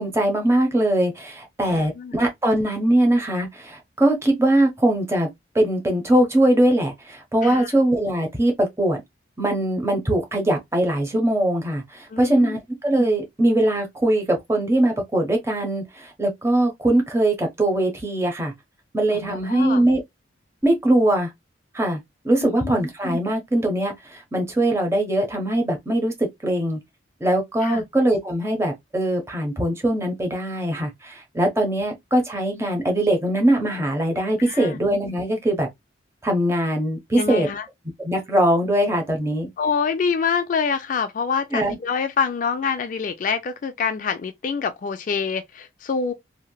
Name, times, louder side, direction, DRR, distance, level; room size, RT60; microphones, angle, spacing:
voice 1, 0.0-5.3 5.5-9.0 9.4-18.5 18.9-20.0 20.6-21.3 21.7-22.0 22.2-26.8 27.2-35.7 36.2-37.5 38.0-39.5 41.5-41.8, right 1 dB, 15° right, 0.8 m, -21 dB
voice 2, 1.7-2.2 7.4-7.7 12.1-12.6 19.1-19.8 22.4-22.7 27.6-27.8 34.4-34.8 37.1-37.7 39.6-46.1, left 6 dB, 45° left, 0.3 m, -26 dB
3.1 x 2.7 x 2.2 m
head